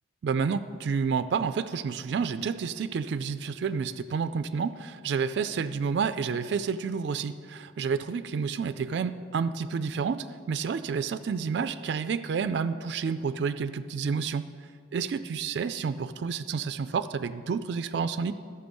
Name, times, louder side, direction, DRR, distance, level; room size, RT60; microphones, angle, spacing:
voice 1, 0.2-14.5 14.9-18.3, right 5 dB, 65° right, 11 dB, 0.3 m, -30 dB
12.5 x 6.8 x 5.3 m, 2.1 s
head